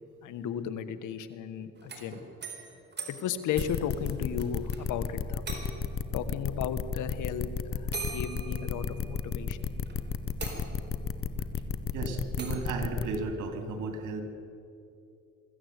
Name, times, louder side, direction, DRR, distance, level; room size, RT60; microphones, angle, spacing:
voice 1, 0.2-2.2 3.1-5.6 6.1-9.7, left 8 dB, 85° left, 11 dB, 1.4 m, -35 dB
sound 1, 1.8-4.8 5.1-5.2 5.5-6.0 7.1-7.2 7.9-9.3 9.9-10.0 10.4-11.1 12.4-12.7, right 4 dB, 35° right, 4.5 m, -41 dB
sound 2, 3.6-13.2, left 7 dB, 45° left, 1.1 m, -32 dB
voice 2, 11.9-14.2, right 3 dB, 85° right, 5 dB, 3.1 m, -34 dB
23.0 x 14.5 x 8.2 m, 2.6 s
cardioid pair, 90°, 30 cm